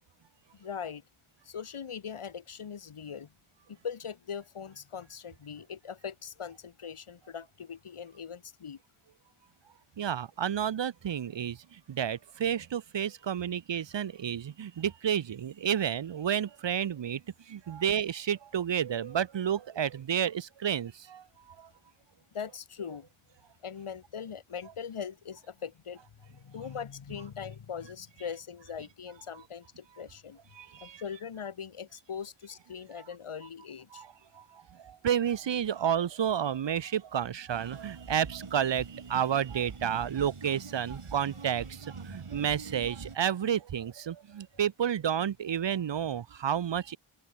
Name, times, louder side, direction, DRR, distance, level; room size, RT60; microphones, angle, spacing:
voice 1, 0.5-1.0 1.4-3.3 3.7-8.8 22.3-23.1 23.6-26.0 26.3-30.4 30.8-34.0, left 7 dB, 85° left, 1.0 m, -41 dB
voice 2, 10.0-17.2 17.5-21.2 21.6-21.7 30.5-31.0 33.9-34.1 34.3-47.0, right 9 dB, 60° right, 0.6 m, -31 dB
sound 1, 37.5-43.2, right 4 dB, 80° right, 2.3 m, -44 dB
open air
wide cardioid pair, 50°, 50 cm